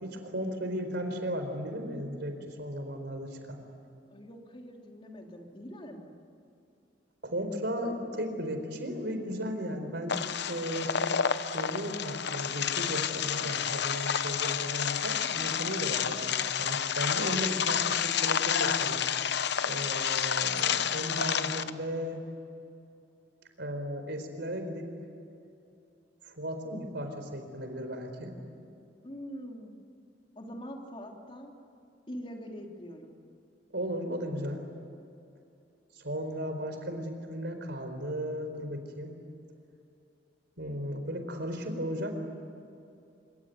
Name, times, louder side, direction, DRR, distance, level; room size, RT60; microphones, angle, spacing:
voice 1, 0.0-3.6 7.2-10.2 10.5-11.2 11.5-19.0 19.6-22.3 23.6-24.9 26.2-28.3 33.7-34.7 35.9-39.2 40.6-42.1, equal, 65° right, 6 dB, 4.4 m, -35 dB
voice 2, 4.0-6.2 29.0-29.7 30.3-31.5 32.1-33.1, equal, 30° left, 2 dB, 3.2 m, -43 dB
sound 1, 10.1-21.7, left 8 dB, 65° left, 0.9 m, -30 dB
25.5 x 23.5 x 9.6 m, 2.7 s
head